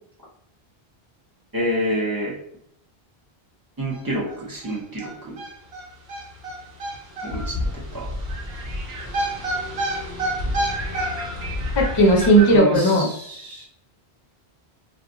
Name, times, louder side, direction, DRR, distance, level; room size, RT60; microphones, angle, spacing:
voice 1, 1.5-2.4 3.8-5.4 7.2-8.1 12.5-13.7, right 1 dB, 20° right, -5 dB, 0.8 m, -28 dB
sound 1, 3.9-4.0 4.3-4.4 4.6-12.6, equal, 70° right, 1.1 m, -28 dB
voice 2, 11.8-13.1, right 1 dB, 30° left, -1 dB, 0.5 m, -16 dB
2.4 x 2.4 x 3.8 m, 0.70 s
omnidirectional pair, 1.1 m